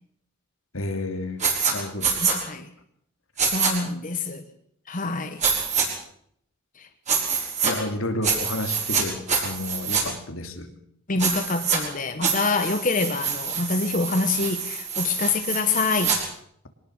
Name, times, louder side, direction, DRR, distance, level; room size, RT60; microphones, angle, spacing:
voice 1, 0.7-1.4 1.7-2.2 7.6-10.7, left 1 dB, 80° left, 2.8 m, -31 dB
sound 1, 1.4-1.7 2.0-2.4 3.4-3.7 5.4-5.9 7.1-7.7 8.2-9.0 9.3-10.0 11.2-11.8 12.2-16.2, right 6 dB, 35° right, 6.0 m, -25 dB
voice 2, 2.2-2.7 3.4-4.4 4.9-5.4 6.8-6.9 11.1-16.2, left 3 dB, 40° left, 1.3 m, -26 dB
23.5 x 19.5 x 6.5 m
head